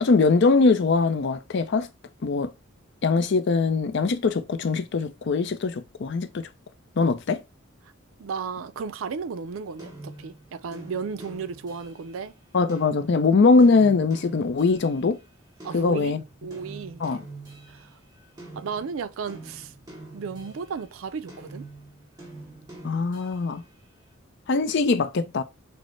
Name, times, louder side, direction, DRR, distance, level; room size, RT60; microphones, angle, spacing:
voice 1, 0.0-1.9 2.2-2.5 3.0-6.5 7.0-7.4 12.5-15.2 15.7-16.2 17.0-17.2 22.8-23.6 24.5-25.4, left 4 dB, 60° left, 0.5 m, -22 dB
voice 2, 8.2-12.3 15.6-17.0 17.7-17.9 18.6-19.7 20.1-21.7, right 5 dB, 75° right, 0.4 m, -34 dB
sound 1, 9.8-15.1 15.6-20.9 21.3-23.7, right 2 dB, 20° right, 1.4 m, -45 dB
6.1 x 2.1 x 3.2 m
head